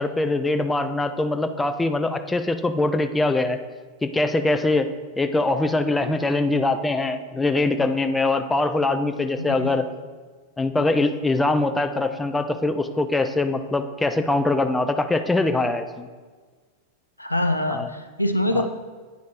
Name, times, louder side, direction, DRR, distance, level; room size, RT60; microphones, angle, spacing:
voice 1, 0.0-3.6 4.0-4.9 5.2-9.9 10.6-16.1 17.7-17.9 18.5-18.7, left 2 dB, 10° left, 8 dB, 0.3 m, -23 dB
voice 2, 9.4-9.7 17.2-18.7, left 1 dB, 85° left, 6 dB, 0.4 m, -24 dB
9.3 x 5.1 x 2.5 m, 1.5 s
figure-of-eight pair, 90°, 0 cm